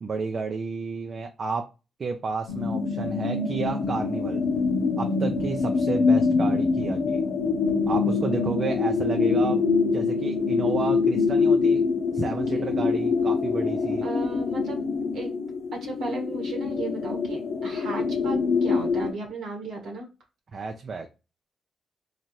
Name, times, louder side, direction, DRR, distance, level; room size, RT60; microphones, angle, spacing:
voice 1, 0.0-1.6 2.0-4.4 5.0-7.2 7.9-9.6 9.9-11.8 12.1-14.0 20.5-21.1, right 4 dB, 55° right, 4 dB, 0.5 m, -31 dB
sound 1, 2.5-19.1, left 4 dB, 70° left, 0.8 m, -25 dB
voice 2, 14.0-14.8 15.1-15.3 15.8-20.1, right 3 dB, 85° right, 1 dB, 1.3 m, -35 dB
3.2 x 2.4 x 4.1 m, 0.29 s
supercardioid pair, 65°, 0 cm